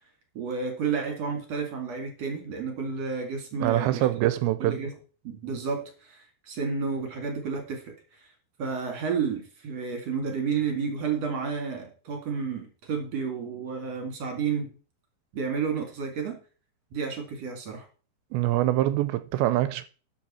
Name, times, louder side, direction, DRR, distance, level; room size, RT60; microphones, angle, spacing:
voice 1, 0.3-4.1 4.6-4.9 5.2-8.3 8.6-14.7 15.3-16.4 16.9-17.9, right 5 dB, 45° right, 2.5 m, -31 dB
voice 2, 3.6-4.8 18.3-19.8, right 14 dB, 80° right, 2.7 m, -24 dB
12.5 x 7.8 x 4.3 m
omnidirectional pair, 5.3 m